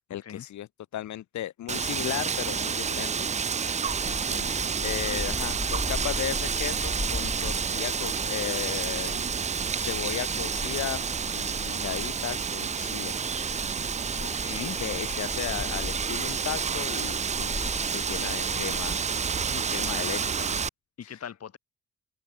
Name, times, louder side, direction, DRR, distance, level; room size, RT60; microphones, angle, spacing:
voice 1, 0.1-3.3 4.2-4.4 4.8-13.1 14.6-19.0 19.7-20.6 21.0-21.2, left 12 dB, 70° left, 1.7 m, -36 dB
Wind, 1.7-20.7, right 6 dB, 25° right, 0.5 m, -29 dB
sound 1, 3.9-20.0, left 1 dB, 10° left, 6.2 m, -39 dB
voice 2, 4.0-4.8 11.6-11.9 14.2-14.8 19.5-20.3 21.0-21.6, left 8 dB, 55° left, 7.2 m, -42 dB
open air
cardioid pair, 90°, 30 cm